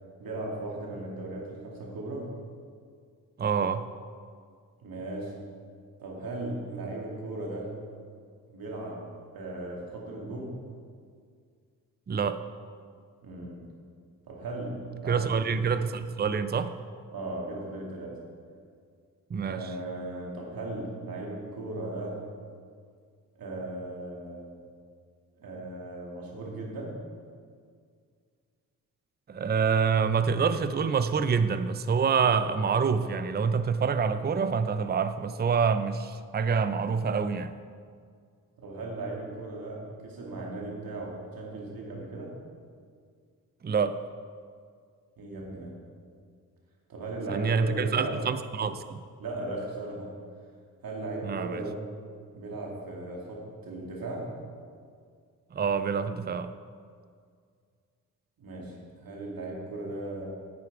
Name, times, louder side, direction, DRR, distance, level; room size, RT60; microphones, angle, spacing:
voice 1, 0.2-2.3 4.8-5.4 6.0-7.8 8.5-10.6 13.2-13.7 14.3-15.6 17.1-18.2 19.5-22.2 23.4-24.5 25.4-27.0 38.6-42.3 45.2-45.8 46.9-48.2 49.2-50.1 50.8-51.8 52.3-54.3 58.4-60.3, right 2 dB, 70° right, -2 dB, 2.5 m, -37 dB
voice 2, 3.4-3.9 12.1-12.4 15.1-16.7 19.3-19.6 29.3-37.5 43.6-44.0 47.3-49.0 51.2-51.6 55.5-56.5, right 6 dB, 25° right, 12 dB, 0.5 m, -26 dB
9.3 x 8.3 x 4.7 m, 2.1 s
supercardioid pair, 45°, 36 cm